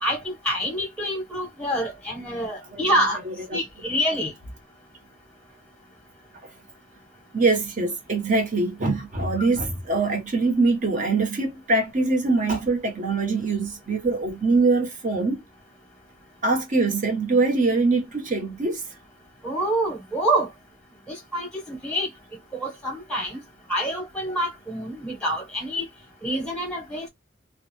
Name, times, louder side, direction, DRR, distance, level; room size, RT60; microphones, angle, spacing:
voice 1, 0.0-3.2 3.5-4.3 19.4-20.5 21.1-22.1 22.6-23.4 23.7-25.9 26.2-27.1, right 1 dB, 5° left, 1.0 m, -26 dB
voice 2, 7.3-15.4 16.4-18.8, right 3 dB, 40° right, 0.9 m, -23 dB
2.3 x 2.1 x 3.1 m
head